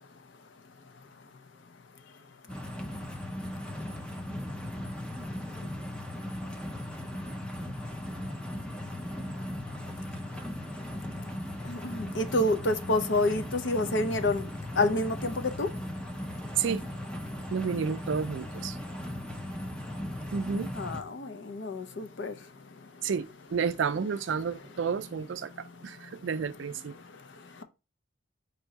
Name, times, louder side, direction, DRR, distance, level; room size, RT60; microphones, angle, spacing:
sound 1, 2.5-21.0, left 1 dB, 5° left, 0.4 m, -38 dB
voice 1, 11.6-14.4 14.8-15.7 20.7-22.3, left 2 dB, 60° left, 0.6 m, -28 dB
voice 2, 17.5-18.8 20.3-20.7 23.0-27.0, right 6 dB, 65° right, 0.4 m, -31 dB
4.5 x 2.7 x 3.9 m
head